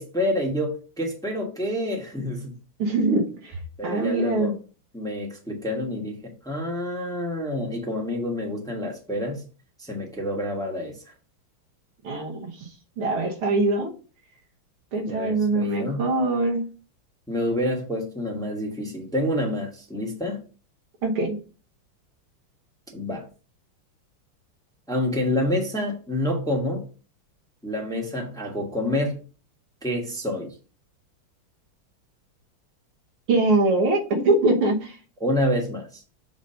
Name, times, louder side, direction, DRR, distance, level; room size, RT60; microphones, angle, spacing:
voice 1, 0.0-2.5 3.8-4.6 4.9-9.4 9.8-11.0 15.1-16.0 17.3-20.4 22.9-23.3 24.9-26.9 27.6-29.2 29.8-30.5 35.2-36.0, left 1 dB, 5° left, 0 dB, 0.8 m, -28 dB
voice 2, 2.8-3.6 3.8-4.5 12.0-12.7 13.0-13.9 14.9-16.7 21.0-21.4 33.3-35.0, right 2 dB, 85° right, 2 dB, 2.0 m, -23 dB
7.0 x 2.7 x 5.5 m, 0.36 s
omnidirectional pair, 2.3 m